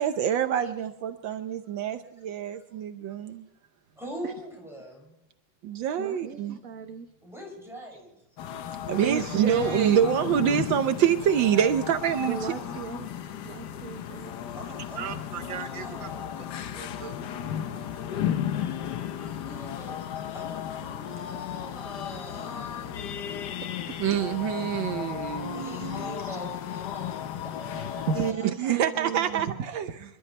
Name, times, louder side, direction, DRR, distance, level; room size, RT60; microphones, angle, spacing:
voice 1, 0.0-3.5 5.6-6.6 8.8-12.5 15.0-16.1 16.8-17.9 18.6-18.8 24.0-26.3 28.1-28.3 28.6-29.9, right 9 dB, 75° right, 1.6 m, -27 dB
voice 2, 4.0-5.2 7.2-8.1 14.5-16.6 19.4-20.0 20.3-23.3 25.5-28.8, equal, ahead, 6.8 m, -43 dB
voice 3, 6.0-7.1 7.9-8.0 12.3-13.1 13.4-14.4 23.0-23.1 23.9-24.0 27.8-28.2 28.5-28.6, right 5 dB, 50° right, 1.3 m, -37 dB
sound 1, 8.4-28.3, left 10 dB, 65° left, 1.3 m, -34 dB
26.5 x 12.0 x 3.3 m
omnidirectional pair, 2.1 m